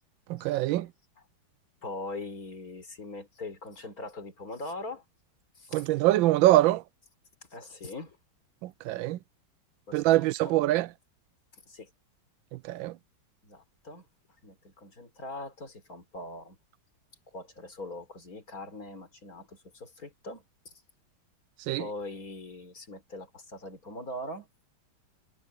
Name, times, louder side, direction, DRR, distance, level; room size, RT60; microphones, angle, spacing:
voice 1, 0.3-0.9 5.7-6.8 8.6-9.2 9.9-10.9 12.5-12.9 21.7-21.9, right 16 dB, 75° right, 1.2 m, -24 dB
voice 2, 1.8-5.0 5.6-5.8 7.5-8.2 9.9-10.6 11.7-11.9 13.4-14.1 14.4-16.6 17.3-20.7 21.8-24.5, left 2 dB, 40° left, 4.9 m, -41 dB
omnidirectional pair, 2.3 m